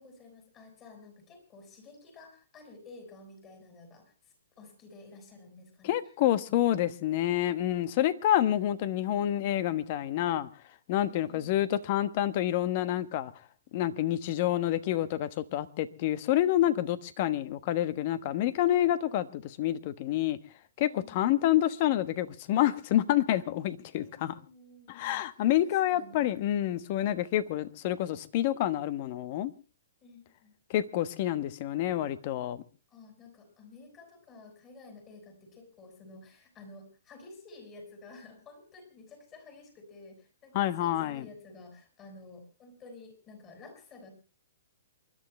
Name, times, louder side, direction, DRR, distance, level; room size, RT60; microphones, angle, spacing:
voice 1, 0.0-4.1 4.6-6.0 11.0-11.5 20.9-21.3 24.0-25.2 25.6-26.2 30.0-30.5 32.9-44.1, left 3 dB, 25° left, 6.1 m, -51 dB
voice 2, 5.8-10.5 10.9-13.3 13.7-20.4 20.8-24.4 24.9-29.5 30.7-32.6 40.5-41.2, left 12 dB, 40° left, 1.2 m, -28 dB
28.5 x 12.0 x 3.2 m
hypercardioid pair, 145°, 0 cm